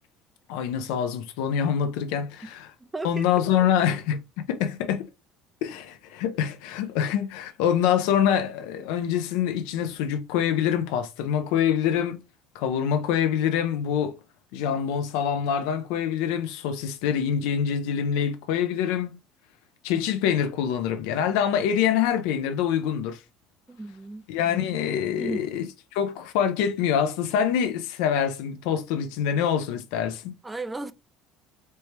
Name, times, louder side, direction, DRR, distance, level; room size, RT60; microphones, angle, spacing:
voice 1, 0.5-2.7 3.0-4.2 4.5-5.1 5.6-12.2 12.5-14.2 14.5-19.2 19.8-23.2 24.3-25.7 25.9-30.3, left 8 dB, 85° left, 0.6 m, -25 dB
voice 2, 2.9-3.5 23.7-24.3 25.2-25.5 30.4-30.9, right 2 dB, 10° right, 0.3 m, -34 dB
4.3 x 2.2 x 3.2 m
cardioid pair, 125°, 0 cm